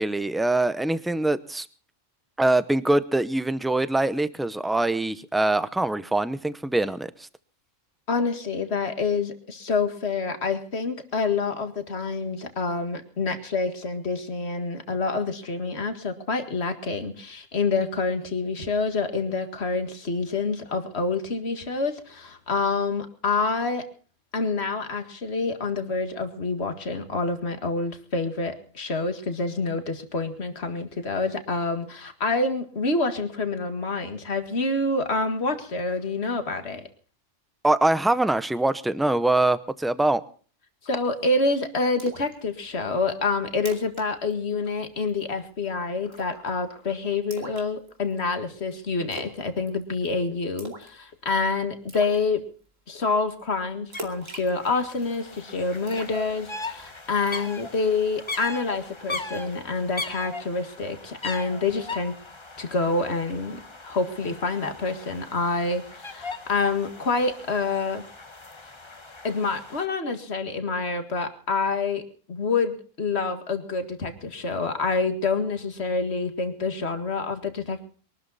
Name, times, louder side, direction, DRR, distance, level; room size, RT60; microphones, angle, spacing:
voice 1, 0.0-1.7 2.4-7.3 37.6-40.2, right 2 dB, ahead, 0.4 m, -23 dB
voice 2, 8.1-23.9 24.3-36.9 40.8-52.4 52.9-62.1 62.6-68.0 69.2-72.0 72.3-77.9, left 3 dB, 55° left, 2.2 m, -27 dB
Splash splatter, 42.0-42.3 42.7-42.8 43.2-43.3 43.6-44.1 44.3-44.5 44.8-45.2 46.1-46.5 47.3-48.2 49.1-49.4 49.7-50.1 50.6-51.0 51.3-51.4 51.9-52.2 53.9-55.2 55.9-56.8 57.3-57.5, right 1 dB, 80° right, 3.0 m, -40 dB
sound 1, 53.9-54.1 54.3-69.9, left 3 dB, 25° left, 1.1 m, -39 dB
23.0 x 13.0 x 4.1 m
omnidirectional pair, 1.3 m